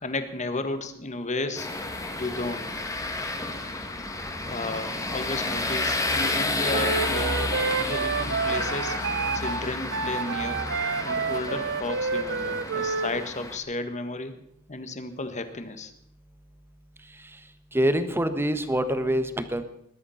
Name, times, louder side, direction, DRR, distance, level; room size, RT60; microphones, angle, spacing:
voice 1, 0.0-1.7 2.2-2.8 4.4-7.5 7.8-9.0 9.3-10.6 11.0-14.3 14.7-15.9, left 2 dB, 35° left, 9 dB, 1.6 m, -33 dB
sound 1, 1.6-13.6, left 2 dB, 15° left, 1.8 m, -31 dB
Wind instrument woodwind instrument, 6.7-13.1, right 5 dB, 55° right, 1.0 m, -29 dB
voice 2, 17.7-19.6, equal, 10° right, 10 dB, 1.3 m, -25 dB
20.5 x 12.0 x 5.8 m, 0.76 s
head